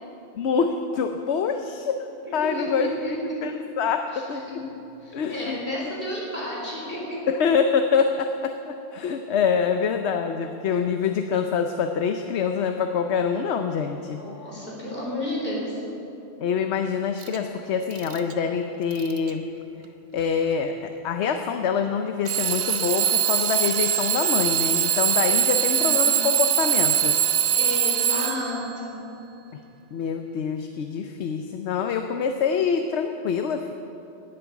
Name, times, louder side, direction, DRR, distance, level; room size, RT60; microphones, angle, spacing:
voice 1, 0.4-2.1 2.3-4.4 5.1-5.6 7.3-14.2 16.4-19.4 20.1-27.1 29.9-33.7, left 6 dB, 65° left, 6 dB, 1.0 m, -25 dB
voice 2, 2.2-3.1 4.1-4.6 5.0-7.2 14.2-15.8 25.7-26.1 27.5-29.0, left 1 dB, 50° left, -4 dB, 4.2 m, -32 dB
Alarm / Clock, 17.2-17.4 17.9-18.3 18.9-19.3 20.2-20.3 22.3-28.7, right 9 dB, 55° right, 1.0 m, -22 dB
18.5 x 8.6 x 7.1 m, 2.9 s
omnidirectional pair, 1.2 m